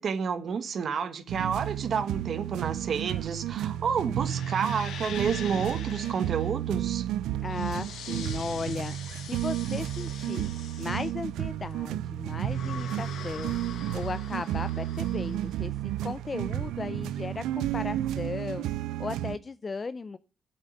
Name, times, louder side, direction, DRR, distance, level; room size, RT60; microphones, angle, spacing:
voice 1, 0.0-7.1, right 6 dB, 55° right, 1.4 m, -30 dB
sound 1, 1.3-19.4, right 13 dB, 90° right, 0.4 m, -32 dB
sound 2, 2.9-16.6, left 8 dB, 75° left, 1.6 m, -44 dB
voice 2, 7.4-9.0 9.3-10.5 10.8-13.5 13.9-15.7 16.0-18.7 19.0-20.2, left 4 dB, 30° left, 0.5 m, -36 dB
8.8 x 7.9 x 6.6 m
cardioid pair, 90°, 0 cm